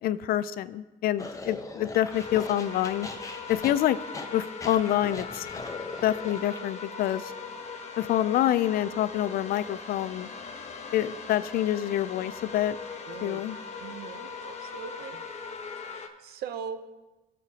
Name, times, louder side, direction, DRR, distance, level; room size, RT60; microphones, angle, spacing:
voice 1, 0.0-3.1 3.5-4.0 4.3-5.5 6.0-7.3 8.0-10.3 10.9-12.8 13.2-13.6, left 12 dB, 60° left, 16 dB, 0.4 m, -27 dB
sound 1, 1.2-6.6, left 3 dB, 20° left, 0.9 m, -40 dB
sound 2, 2.1-16.1, left 4 dB, 40° left, 1.1 m, -40 dB
voice 2, 13.1-13.4 13.8-15.2 15.8-16.9, right 7 dB, 70° right, 11 dB, 0.7 m, -40 dB
17.0 x 6.4 x 2.8 m, 1.1 s
cardioid pair, 110°, 17 cm